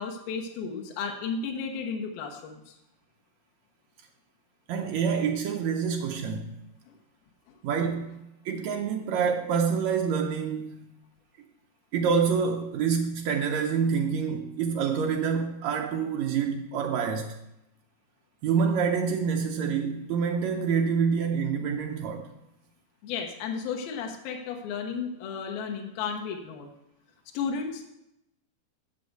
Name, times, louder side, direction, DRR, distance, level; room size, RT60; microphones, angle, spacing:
voice 1, 0.0-2.8 6.9-7.0 23.0-26.7 27.3-27.8, left 5 dB, 75° left, 2.8 m, -33 dB
voice 2, 4.7-6.6 7.6-10.9 11.9-17.4 18.4-22.3, right 6 dB, 85° right, 1.6 m, -27 dB
8.4 x 6.6 x 7.9 m
omnidirectional pair, 4.4 m